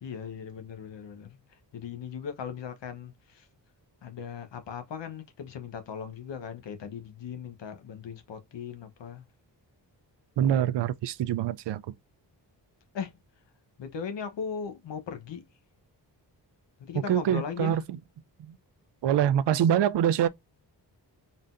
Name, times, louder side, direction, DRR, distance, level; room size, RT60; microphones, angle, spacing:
voice 1, 0.0-1.4 1.7-3.5 4.0-9.2 12.9-13.1 13.8-15.4 16.8-17.8, left 7 dB, 80° left, 1.0 m, -38 dB
voice 2, 10.4-11.8 17.1-17.8 18.4-18.5 19.0-20.3, right 10 dB, 75° right, 0.5 m, -24 dB
4.0 x 3.8 x 2.5 m
wide cardioid pair, 125°, 43 cm